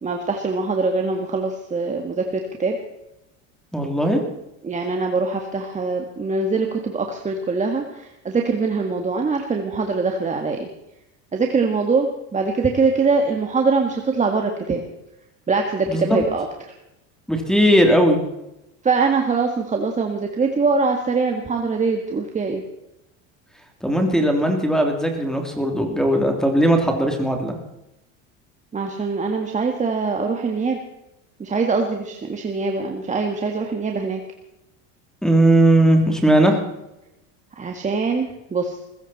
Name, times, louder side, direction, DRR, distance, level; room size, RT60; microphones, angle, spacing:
voice 1, 0.0-2.8 4.6-10.7 11.3-14.8 15.5-16.7 18.8-22.6 28.7-30.8 31.4-34.2 37.6-38.8, right 4 dB, 20° right, 3 dB, 1.9 m, -23 dB
voice 2, 3.7-4.2 15.9-16.2 17.3-18.2 23.8-27.6 35.2-36.6, right 1 dB, ahead, 3 dB, 3.1 m, -18 dB
20.0 x 16.0 x 4.3 m, 0.90 s
supercardioid pair, 120°, 33 cm